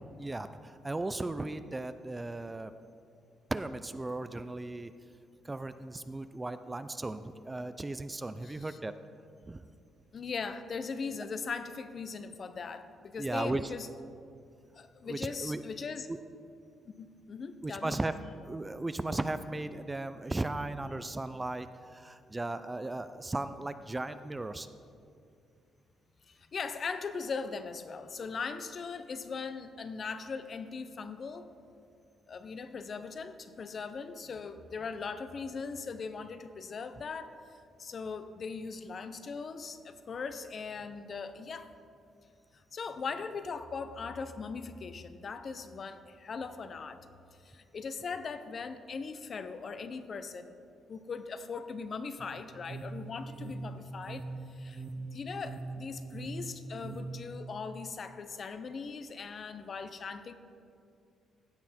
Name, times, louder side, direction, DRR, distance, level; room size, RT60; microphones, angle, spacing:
voice 1, 0.2-2.7 3.5-4.9 5.4-8.9 9.4-9.6 13.2-13.6 15.0-15.6 16.1-16.2 17.6-24.7, right 2 dB, 20° right, 12 dB, 0.4 m, -36 dB
voice 2, 8.4-8.8 10.1-13.9 14.7-16.1 17.0-18.0 26.3-31.5 32.3-41.7 42.5-47.0 47.4-50.5 50.9-54.2 54.5-60.3, left 5 dB, 45° left, 11 dB, 0.6 m, -40 dB
sound 1, 52.2-57.4, right 3 dB, 40° right, 0.8 m, -42 dB
15.5 x 5.9 x 4.3 m, 2.4 s
cardioid pair, 90°, 0 cm